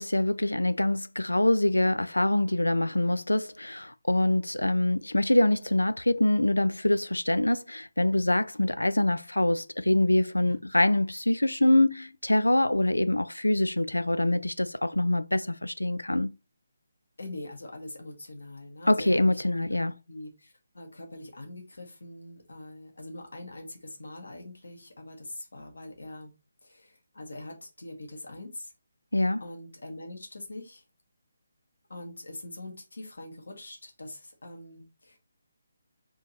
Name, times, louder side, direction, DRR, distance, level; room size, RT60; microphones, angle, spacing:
voice 1, 0.0-16.3 18.9-19.9 29.1-29.4, left 1 dB, 80° left, 0.3 m, -25 dB
voice 2, 17.2-26.3 26.6-28.7 29.4-30.8 31.9-35.2, left 1 dB, 65° left, 1.4 m, -43 dB
3.6 x 2.8 x 4.1 m
figure-of-eight pair, 145°, 0 cm